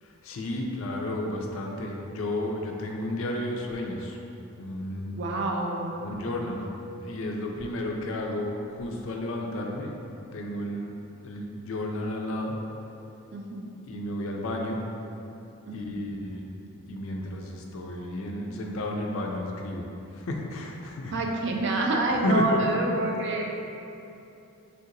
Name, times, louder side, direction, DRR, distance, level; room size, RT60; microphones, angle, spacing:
voice 1, 0.0-4.2 4.6-5.2 6.0-9.9 10.3-10.9 11.2-12.6 13.9-14.8 15.7-16.5 16.9-19.9 20.1-21.1 22.2-22.7, left 1 dB, 60° left, 0 dB, 0.3 m, -32 dB
voice 2, 5.1-6.0 13.3-13.7 15.7-16.0 21.1-23.6, right 2 dB, 50° right, 0 dB, 0.3 m, -27 dB
3.4 x 2.8 x 2.5 m, 2.8 s
head